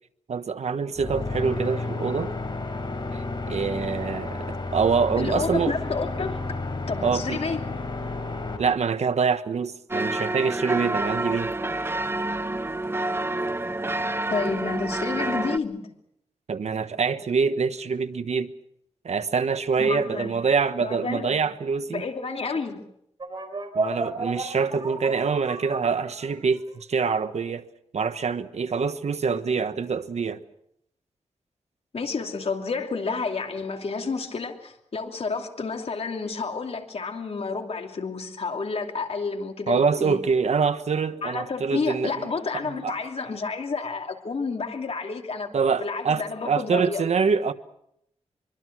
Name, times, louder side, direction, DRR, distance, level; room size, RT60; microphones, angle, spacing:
voice 1, 0.3-2.3 3.1-5.8 7.0-7.4 8.6-11.5 16.5-18.5 19.0-22.0 23.7-27.6 27.9-30.4 39.7-42.1 42.6-42.9 45.5-47.5, right 5 dB, 75° right, 1.3 m, -25 dB
sound 1, 1.0-8.6, left 3 dB, 40° left, 5.0 m, -32 dB
voice 2, 5.2-6.4 6.9-7.6 14.3-15.9 19.8-20.4 20.8-21.4 21.9-22.8 31.9-40.2 41.2-45.5 45.8-47.0, left 4 dB, 60° left, 2.9 m, -30 dB
sound 2, 9.9-15.6, right 2 dB, 20° right, 0.9 m, -28 dB
sound 3, 23.2-26.7, right 3 dB, 45° right, 4.4 m, -32 dB
24.5 x 24.0 x 6.2 m
wide cardioid pair, 90°, 11 cm